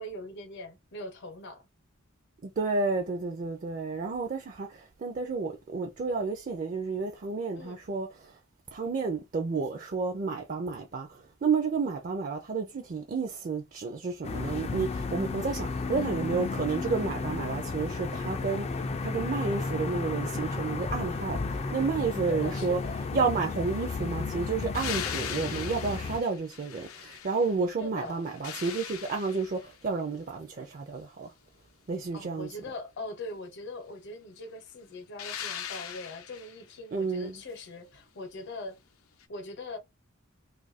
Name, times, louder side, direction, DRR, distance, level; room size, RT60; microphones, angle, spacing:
voice 1, 0.0-1.7 7.6-7.8 15.5-16.1 22.3-23.0 27.8-28.3 32.1-38.8 39.3-39.8, left 2 dB, 55° left, 0.8 m, -41 dB
voice 2, 2.4-8.1 8.7-11.1 11.4-18.7 19.0-22.8 23.1-31.3 31.9-32.5 36.9-37.3, right 4 dB, 40° right, 0.4 m, -31 dB
sound 1, 14.2-26.2, left 3 dB, 30° left, 0.3 m, -33 dB
sound 2, 24.7-27.7 28.1-29.8 35.2-36.6 39.2-39.3, left 8 dB, 90° left, 0.6 m, -39 dB
2.6 x 2.4 x 4.0 m
head